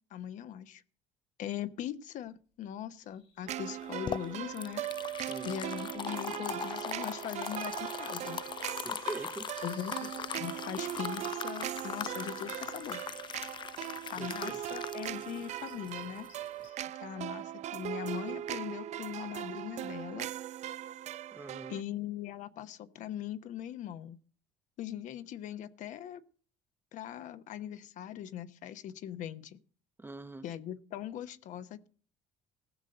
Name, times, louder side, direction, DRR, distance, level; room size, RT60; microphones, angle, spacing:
voice 1, 0.1-0.8 1.4-4.8 5.4-8.4 9.6-13.0 14.1-16.3 17.0-20.3 21.7-24.2 24.8-26.2 26.9-29.6 30.4-31.9, left 11 dB, 60° left, 1.1 m, -40 dB
Bird vocalization bird call bird song, 2.9-16.9, left 6 dB, 90° left, 6.8 m, -61 dB
sound 1, 3.5-21.8, right 12 dB, 55° right, 0.5 m, -39 dB
sound 2, 3.7-16.7, left 8 dB, 35° left, 0.5 m, -41 dB
voice 2, 8.8-9.5 14.2-14.6 21.3-21.8 30.0-30.4, right 2 dB, 15° right, 0.9 m, -43 dB
15.5 x 6.4 x 6.7 m
supercardioid pair, 75°, 14 cm